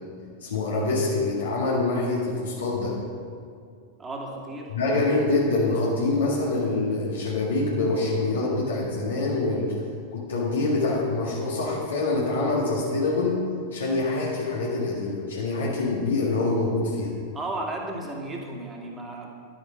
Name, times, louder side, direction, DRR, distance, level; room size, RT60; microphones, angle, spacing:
voice 1, 0.4-3.0 4.7-9.8 10.1-13.4 13.7-17.1, left 2 dB, 65° left, -4 dB, 1.8 m, -25 dB
voice 2, 4.0-4.7 17.3-19.3, right 2 dB, 15° right, -1 dB, 2.1 m, -34 dB
11.5 x 9.4 x 5.1 m, 2.4 s
figure-of-eight pair, 90°, 0 cm